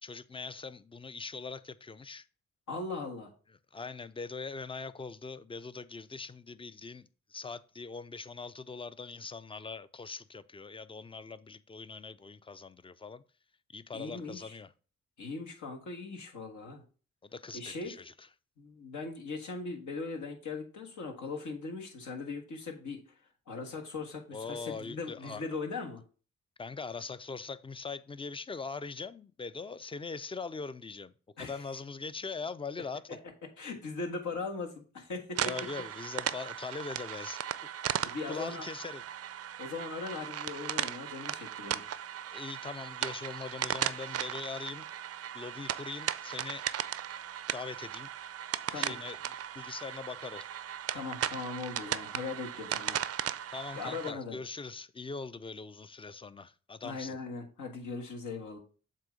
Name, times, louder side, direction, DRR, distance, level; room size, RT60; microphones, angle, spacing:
voice 1, 0.0-2.3 3.7-13.2 13.7-14.7 17.2-18.3 24.3-25.6 26.6-31.1 31.4-33.2 35.4-37.4 38.3-39.0 42.2-44.9 45.3-46.7 47.5-48.1 48.7-49.2 49.5-50.5 53.5-57.2, left 4 dB, 20° left, 0.4 m, -41 dB
voice 2, 2.7-3.3 13.9-14.5 15.2-16.8 17.5-17.9 18.6-23.0 23.5-26.0 31.4-31.6 33.6-35.4 38.0-38.7 39.6-41.8 48.7-48.9 50.9-53.0 53.7-54.4 56.8-58.6, left 4 dB, 75° left, 1.5 m, -39 dB
sound 1, 35.3-54.1, right 10 dB, 55° right, 0.4 m, -37 dB
7.5 x 2.7 x 5.0 m
cardioid pair, 60°, 30 cm